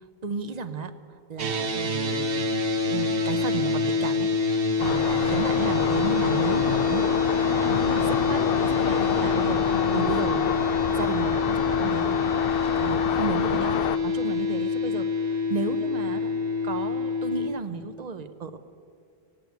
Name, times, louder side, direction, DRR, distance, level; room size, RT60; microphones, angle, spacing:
voice 1, 0.2-0.9 1.3-2.5 2.8-4.3 4.8-9.6 9.9-12.2 12.8-16.4 16.6-18.6, right 4 dB, 45° right, 9 dB, 0.8 m, -33 dB
sound 1, 1.4-17.5, left 4 dB, 65° right, 1.2 m, -26 dB
sound 2, 4.8-14.0, left 9 dB, 70° left, 0.7 m, -28 dB
17.0 x 8.9 x 9.3 m, 2.2 s
omnidirectional pair, 1.0 m